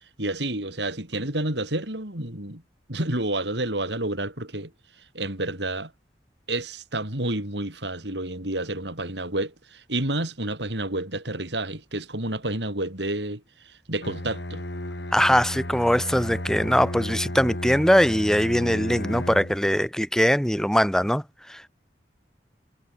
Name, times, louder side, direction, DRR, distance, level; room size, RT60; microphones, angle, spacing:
voice 1, 0.2-2.6 2.9-4.7 5.1-5.9 6.5-14.6, right 1 dB, 80° right, 7.2 m, -29 dB
Bowed string instrument, 14.0-19.7, left 1 dB, 80° left, 5.5 m, -33 dB
voice 2, 15.1-21.2 21.5-21.7, equal, 5° left, 5.3 m, -21 dB
head